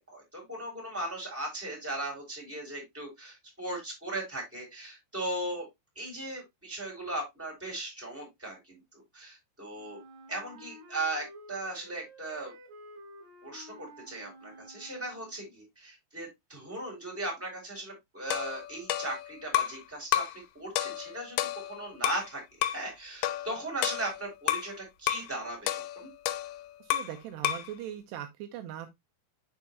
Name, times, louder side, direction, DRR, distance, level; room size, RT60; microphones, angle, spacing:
voice 1, 0.0-5.7 6.0-10.0 10.3-12.5 13.4-20.3 20.5-22.4 22.7-26.1, right 2 dB, 5° right, 3.6 m, -38 dB
Wind instrument woodwind instrument, 9.7-15.5, equal, 65° right, 4.0 m, -51 dB
sound 1, 18.3-19.8 20.1-20.4 20.8-22.3 22.6-22.9 23.2-24.7 25.1-25.3 25.7-27.2 27.4-27.7, left 13 dB, 90° left, 3.1 m, -31 dB
voice 2, 26.8-28.9, right 11 dB, 80° right, 2.8 m, -40 dB
7.1 x 6.3 x 2.8 m
omnidirectional pair, 5.1 m